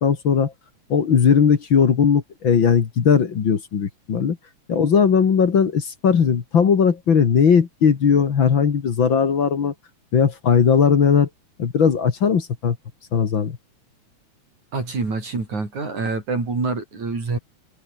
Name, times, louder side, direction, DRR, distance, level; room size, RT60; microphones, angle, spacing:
voice 1, 0.0-0.5 0.9-4.4 4.7-9.7 10.1-11.3 11.6-12.8 13.1-13.6, left 6 dB, 45° left, 2.2 m, -18 dB
voice 2, 14.7-17.4, right 3 dB, 70° right, 8.0 m, -26 dB
omnidirectional pair, 3.4 m